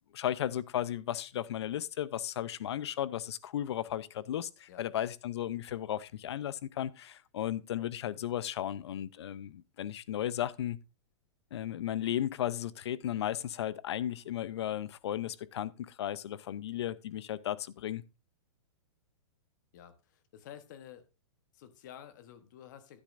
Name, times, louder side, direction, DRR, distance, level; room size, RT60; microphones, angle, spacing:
voice 1, 0.1-10.8 11.5-18.0, left 11 dB, 60° left, 0.6 m, -35 dB
voice 2, 19.7-21.1 21.5-23.0, left 10 dB, 40° left, 1.0 m, -51 dB
12.0 x 9.8 x 2.5 m
hypercardioid pair, 175°, 16 cm